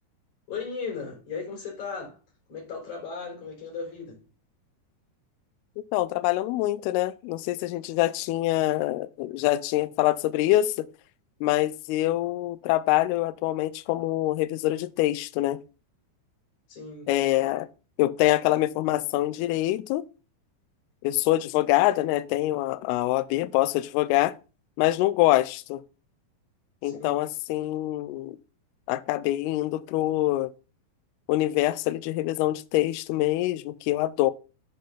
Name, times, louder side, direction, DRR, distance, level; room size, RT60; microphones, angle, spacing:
voice 1, 0.5-2.2 2.5-4.2 16.7-17.1 26.8-27.2, left 5 dB, 45° left, 5.0 m, -36 dB
voice 2, 5.9-10.9 11.4-15.6 17.1-17.7 18.0-20.0 21.0-24.3 24.8-25.8 26.8-28.4 28.9-30.5 31.3-34.3, left 16 dB, 90° left, 2.2 m, -25 dB
7.9 x 5.1 x 5.6 m
omnidirectional pair, 5.1 m